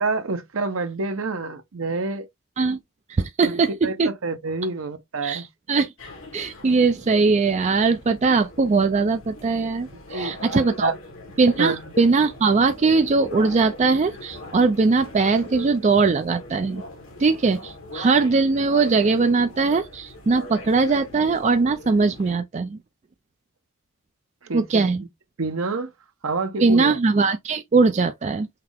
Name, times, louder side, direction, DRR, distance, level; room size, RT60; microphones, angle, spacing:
voice 1, 0.0-2.3 3.4-5.5 10.1-11.0 11.6-11.8 24.4-25.1 25.4-25.9 26.2-27.0, right 3 dB, 70° right, 0.8 m, -28 dB
voice 2, 3.1-4.1 5.2-5.9 6.3-10.9 11.4-16.8 17.2-22.8 24.5-25.0 26.6-28.6, right 4 dB, 35° right, 0.4 m, -20 dB
sound 1, 6.0-22.3, left 1 dB, 70° left, 2.0 m, -41 dB
5.8 x 2.0 x 3.4 m
head